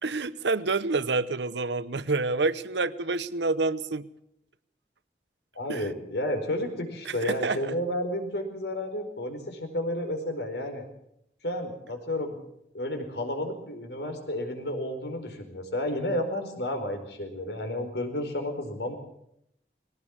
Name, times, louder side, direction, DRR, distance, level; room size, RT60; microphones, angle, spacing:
voice 1, 0.0-4.1 5.7-5.9 7.0-7.7, right 3 dB, 90° right, 15 dB, 0.9 m, -28 dB
voice 2, 5.5-10.8 11.4-12.4 12.7-19.0, left 1 dB, 80° left, 5 dB, 4.7 m, -31 dB
21.0 x 17.5 x 7.4 m, 0.77 s
head